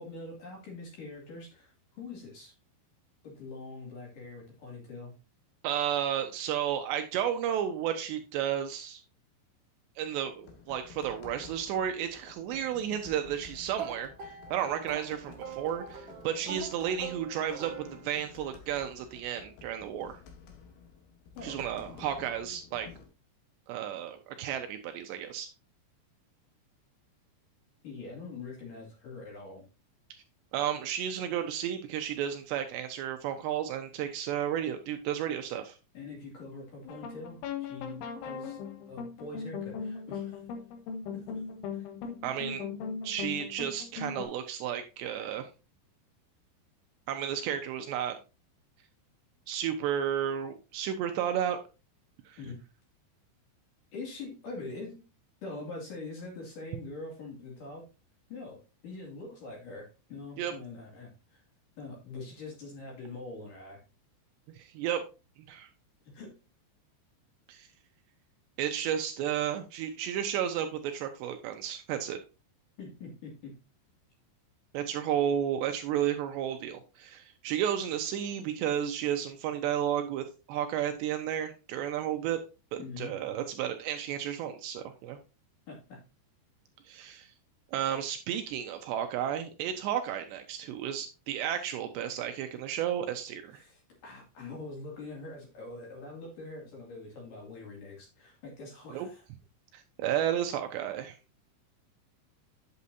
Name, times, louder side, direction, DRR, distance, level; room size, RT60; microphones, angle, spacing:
voice 1, 0.0-2.5 3.2-5.1 21.4-21.6 27.8-29.6 35.9-38.6 38.9-40.4 41.1-42.2 52.4-52.6 53.9-55.1 55.4-57.8 58.3-61.4 61.8-63.8 66.0-66.4 72.8-73.6 82.8-83.1 85.7-86.0 93.5-99.2, left 3 dB, 50° left, -1 dB, 3.5 m, -44 dB
voice 2, 5.6-9.0 10.0-20.2 21.4-22.9 23.7-25.5 30.5-35.8 42.2-42.7 43.0-45.5 47.1-48.2 49.5-51.6 52.3-52.4 60.4-60.5 64.5-65.0 65.5-65.7 67.5-67.7 68.6-72.2 74.7-82.4 82.7-85.2 86.9-87.3 87.7-93.6 98.9-99.1 99.7-101.2, right 9 dB, 80° right, 6 dB, 2.7 m, -32 dB
sound 1, 10.0-23.1, left 7 dB, 65° left, 3.1 m, -52 dB
sound 2, 13.8-18.4, right 7 dB, 60° right, 2.6 m, -43 dB
sound 3, 36.9-44.3, left 6 dB, 85° left, 3.6 m, -39 dB
8.4 x 8.3 x 2.6 m, 0.29 s
omnidirectional pair, 5.4 m